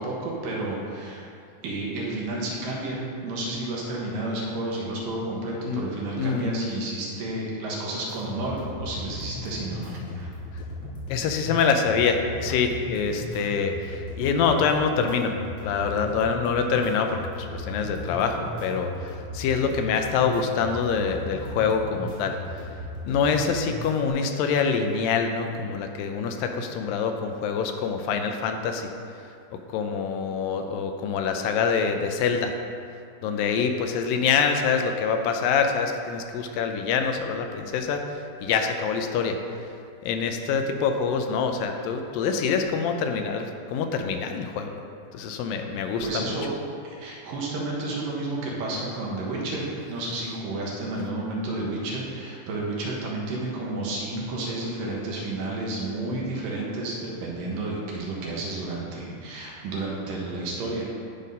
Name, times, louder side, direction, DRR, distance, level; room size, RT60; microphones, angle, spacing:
voice 1, 0.0-1.3 1.6-10.3 46.0-46.5 46.8-60.9, right 2 dB, 75° right, -3 dB, 2.9 m, -31 dB
voice 2, 6.2-6.7 11.1-15.3 15.6-22.4 23.0-28.9 29.5-32.5 33.2-38.0 38.4-39.4 40.0-44.8 45.1-46.4, left 6 dB, 80° left, 5 dB, 2.3 m, -25 dB
sound 1, 8.1-24.1, left 1 dB, 50° left, 3.5 m, -37 dB
11.5 x 4.1 x 5.3 m, 2.4 s
omnidirectional pair, 4.1 m